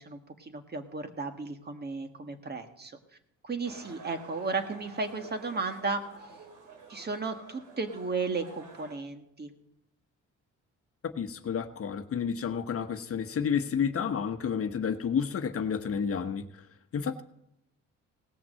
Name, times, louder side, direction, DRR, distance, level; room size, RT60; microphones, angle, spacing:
voice 1, 0.0-3.0 3.4-6.0 6.9-9.5, right 4 dB, 35° right, 1.6 m, -34 dB
sound 1, 3.6-8.9, right 3 dB, 90° right, 3.1 m, -49 dB
voice 2, 11.0-16.5 16.9-17.2, left 7 dB, 50° left, 1.0 m, -30 dB
17.5 x 5.9 x 7.6 m
cardioid pair, 90°, 30 cm